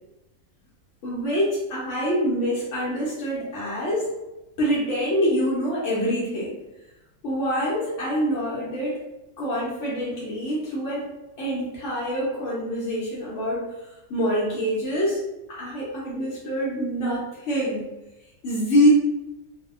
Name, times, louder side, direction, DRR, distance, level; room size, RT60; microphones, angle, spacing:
voice 1, 1.0-4.1 4.6-6.6 7.2-9.0 9.4-11.1 11.4-13.7 14.1-15.2 15.5-17.9 18.4-18.9, equal, 60° left, -6 dB, 0.9 m, -25 dB
2.6 x 2.1 x 2.4 m, 1.0 s
omnidirectional pair, 1.6 m